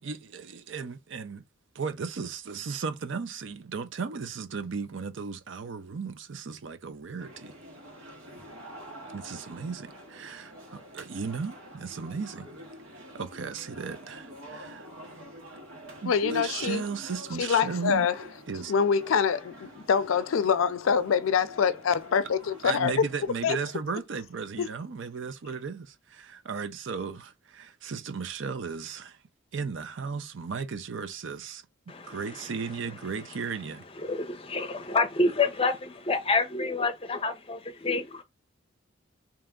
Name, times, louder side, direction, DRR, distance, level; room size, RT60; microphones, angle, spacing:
voice 1, 0.0-1.4 1.7-7.5 9.1-12.5 13.1-14.9 16.0-18.1 18.5-18.7 22.6-29.2 29.5-31.6 32.0-33.8, right 5 dB, 60° right, 0.5 m, -35 dB
sound 1, 7.2-23.3, equal, 85° right, 1.6 m, -47 dB
voice 2, 16.1-16.8 17.4-18.2 18.7-22.9 23.4-23.6 24.6-24.7, left 6 dB, 70° left, 0.4 m, -25 dB
voice 3, 31.9-32.5 34.0-38.2, left 3 dB, 25° left, 0.6 m, -28 dB
3.4 x 2.9 x 3.6 m
head